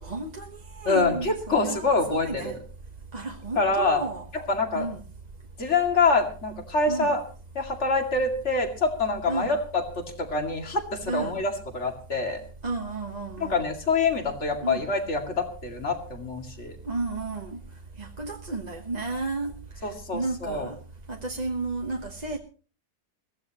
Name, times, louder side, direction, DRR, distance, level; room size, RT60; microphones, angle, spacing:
voice 1, 0.0-2.6 3.1-4.3 4.7-5.0 6.9-7.2 9.3-9.5 11.1-11.4 12.6-13.7 14.6-14.9 16.8-17.6 18.0-19.5 20.1-20.7 21.1-22.4, right 3 dB, 30° right, 2 dB, 1.2 m, -32 dB
voice 2, 0.9-2.6 3.6-4.0 4.3-4.9 5.6-7.2 7.5-12.4 13.4-16.8 19.8-20.7, left 3 dB, 45° left, 4 dB, 2.6 m, -26 dB
22.5 x 15.5 x 2.9 m, 0.37 s
omnidirectional pair, 1.7 m